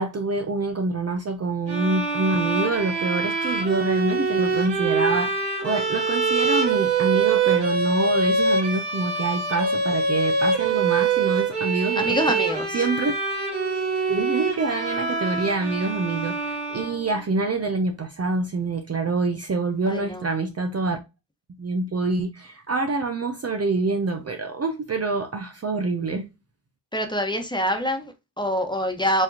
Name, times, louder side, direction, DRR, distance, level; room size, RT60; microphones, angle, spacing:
voice 1, 0.0-12.2 12.7-13.1 14.1-21.0 21.6-26.3, right 3 dB, 30° right, 0.7 m, -26 dB
sound 1, 1.7-17.3, right 4 dB, 55° right, 1.8 m, -24 dB
voice 2, 11.9-12.8 19.9-20.3 26.9-29.2, equal, 10° left, 1.3 m, -25 dB
4.7 x 2.8 x 2.8 m
supercardioid pair, 45°, 49 cm